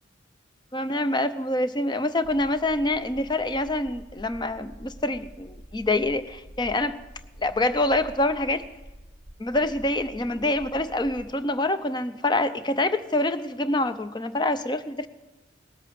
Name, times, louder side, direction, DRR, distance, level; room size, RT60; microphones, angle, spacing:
voice 1, 0.7-7.0 7.4-8.6 9.4-15.1, left 2 dB, 25° left, 12 dB, 0.6 m, -26 dB
sound 1, 2.2-11.3, equal, 15° right, 1.8 m, -47 dB
19.0 x 8.4 x 8.6 m, 1.1 s
head